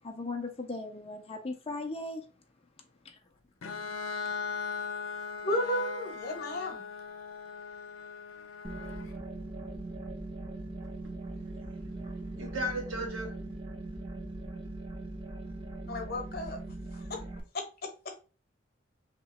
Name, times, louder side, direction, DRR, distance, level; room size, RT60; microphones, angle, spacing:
voice 1, 0.0-2.3 3.0-3.2, left 2 dB, 30° left, 0.4 m, -38 dB
Bowed string instrument, 3.6-9.2, left 5 dB, 90° left, 0.6 m, -39 dB
voice 2, 5.4-6.8 15.9-16.6 16.9-17.2 17.5-18.2, left 1 dB, 50° left, 0.9 m, -34 dB
sound 1, 8.6-17.4, right 2 dB, 25° right, 0.6 m, -40 dB
voice 3, 11.2-13.3, equal, 85° right, 1.3 m, -38 dB
3.0 x 2.8 x 4.1 m
head